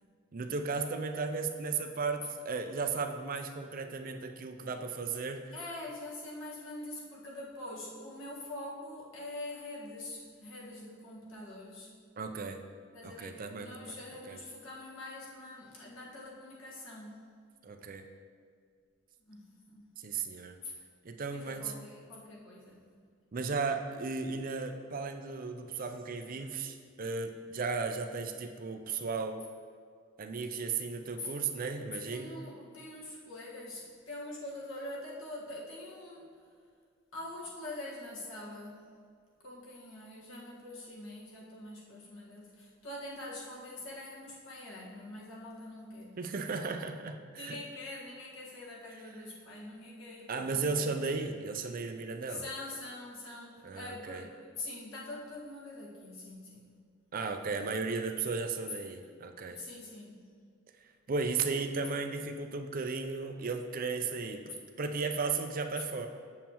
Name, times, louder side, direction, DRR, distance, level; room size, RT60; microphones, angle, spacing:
voice 1, 0.3-5.4 12.2-12.6 13.0-13.9 14.3-14.4 17.6-18.0 20.0-20.6 21.0-21.7 23.3-29.4 30.2-32.3 46.2-47.6 50.3-52.4 53.6-54.2 57.1-59.6 61.1-66.1, right 4 dB, 40° right, 6 dB, 0.5 m, -35 dB
voice 2, 5.5-11.9 12.9-17.3 19.2-19.9 20.6-20.7 21.2-22.8 31.2-31.3 31.9-36.5 37.1-38.9 39.4-46.3 47.3-50.8 52.3-56.7 59.5-60.3, left 2 dB, 65° left, -5 dB, 1.6 m, -44 dB
7.2 x 7.2 x 3.0 m, 2.1 s
head